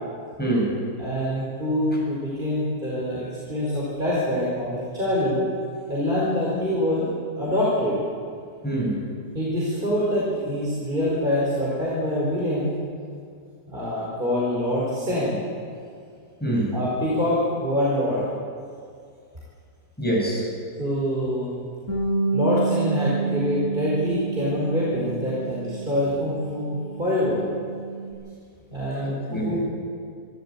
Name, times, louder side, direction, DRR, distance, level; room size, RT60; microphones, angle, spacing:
voice 1, 0.4-0.8 8.6-9.0 16.4-16.7 20.0-20.5 29.0-29.6, right 1 dB, 5° left, -4 dB, 7.4 m, -25 dB
voice 2, 1.0-5.4 5.9-8.0 9.3-12.7 13.7-15.4 16.7-18.3 20.8-21.6 22.3-27.4 28.7-29.7, left 1 dB, 30° right, -6 dB, 5.2 m, -25 dB
Bass guitar, 21.9-28.1, right 4 dB, 45° left, 8.2 m, -29 dB
26.5 x 14.5 x 8.7 m, 2.3 s
omnidirectional pair, 1.8 m